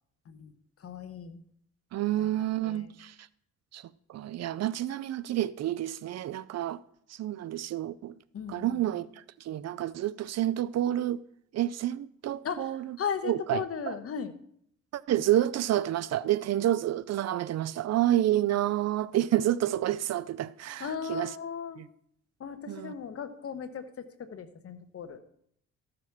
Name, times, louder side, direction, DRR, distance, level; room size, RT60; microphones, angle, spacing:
voice 1, 0.8-1.4 2.2-2.3 2.6-2.9 8.3-9.0 12.4-14.3 20.8-21.8 22.4-25.2, left 7 dB, 50° left, 1.2 m, -37 dB
voice 2, 1.9-3.1 3.7-6.8 7.1-8.1 8.5-9.1 9.4-11.2 11.5-12.9 13.2-13.9 14.9-21.3 22.7-22.9, right 13 dB, 60° right, 0.5 m, -29 dB
14.0 x 5.1 x 6.0 m
cardioid pair, 90°, 30 cm